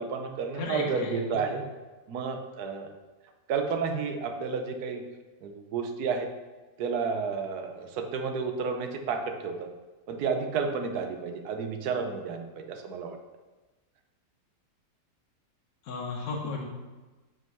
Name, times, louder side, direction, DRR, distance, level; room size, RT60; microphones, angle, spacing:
voice 1, 0.0-1.7 2.1-2.9 3.5-5.0 5.4-6.3 6.8-9.5 10.1-13.2, right 5 dB, 70° right, 5 dB, 1.3 m, -31 dB
voice 2, 0.5-1.4 15.8-16.7, left 3 dB, 65° left, -1 dB, 1.4 m, -34 dB
5.6 x 5.6 x 5.4 m, 1.2 s
omnidirectional pair, 1.8 m